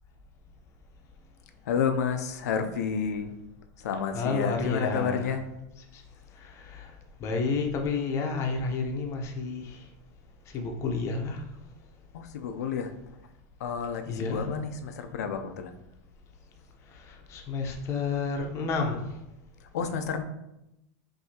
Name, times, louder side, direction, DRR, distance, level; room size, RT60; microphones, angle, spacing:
voice 1, 1.6-3.3 3.8-5.4 12.1-12.9 13.6-15.7 19.6-20.2, left 6 dB, 85° left, 7 dB, 0.5 m, -30 dB
voice 2, 4.1-5.3 6.7-6.9 7.2-9.6 10.5-11.4 14.1-14.4 17.3-19.0, left 4 dB, 35° left, 3 dB, 0.7 m, -30 dB
5.7 x 2.7 x 2.8 m, 0.88 s
supercardioid pair, 140°, 8 cm